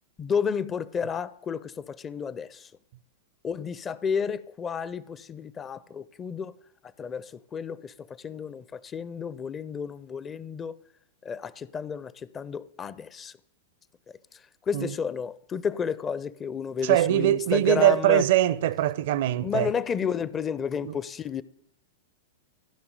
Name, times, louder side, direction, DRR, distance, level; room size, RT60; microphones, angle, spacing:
voice 1, 0.2-2.7 3.4-6.5 7.0-10.8 11.2-13.4 14.3-18.2 19.4-21.4, left 6 dB, 20° left, 0.5 m, -31 dB
voice 2, 16.8-19.7 20.8-20.9, right 14 dB, 55° right, 0.6 m, -22 dB
14.5 x 6.0 x 9.1 m
figure-of-eight pair, 100°, 0 cm